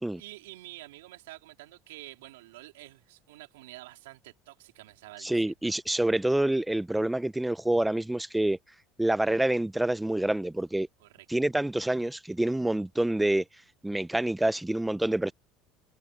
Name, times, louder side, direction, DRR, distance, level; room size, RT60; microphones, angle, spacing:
voice 1, 0.2-5.5 11.0-11.3, right 18 dB, 85° right, 4.2 m, -48 dB
voice 2, 5.2-8.6 9.0-10.9 11.3-13.4 13.8-15.3, right 1 dB, 5° right, 1.0 m, -27 dB
supercardioid pair, 95°, 0 cm